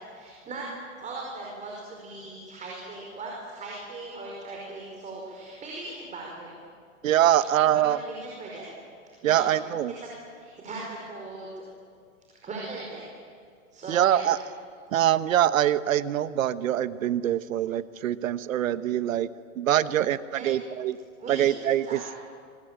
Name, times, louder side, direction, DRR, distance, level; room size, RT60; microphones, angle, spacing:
voice 1, 0.1-0.7 1.0-6.6 7.6-8.7 9.2-9.5 9.9-10.1 10.3-11.7 12.3-13.1 13.7-14.3 20.3-20.5 21.2-22.2, right 3 dB, 15° right, -2 dB, 5.1 m, -39 dB
voice 2, 7.0-8.0 9.2-9.9 13.9-14.4 14.9-19.3 19.6-21.0 21.3-22.0, right 11 dB, 70° right, 14 dB, 1.2 m, -24 dB
26.0 x 23.0 x 8.9 m, 2.2 s
hypercardioid pair, 140°, 41 cm